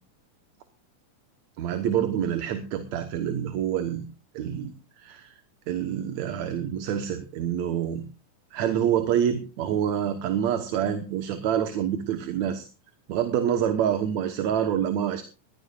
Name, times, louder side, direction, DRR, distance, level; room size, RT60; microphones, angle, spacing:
voice 1, 1.6-4.0 4.3-5.3 5.7-8.0 8.5-12.7 13.1-15.2, right 9 dB, 70° right, 8 dB, 2.3 m, -27 dB
20.5 x 15.0 x 2.4 m, 0.32 s
omnidirectional pair, 3.6 m